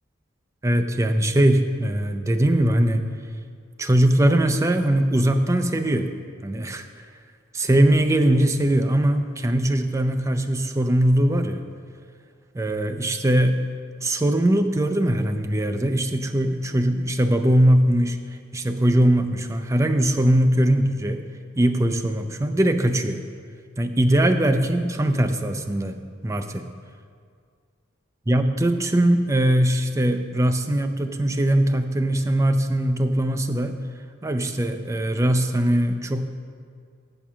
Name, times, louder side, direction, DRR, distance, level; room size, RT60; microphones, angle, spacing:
voice 1, 0.6-3.0 3.8-6.1 6.4-6.9 7.5-11.6 12.5-13.6 14.0-18.2 18.5-21.2 21.6-23.2 23.8-26.0 26.2-26.7 28.3-33.8 34.2-36.3, right 1 dB, 15° right, 7 dB, 0.4 m, -21 dB
7.4 x 7.1 x 6.0 m, 2.1 s
head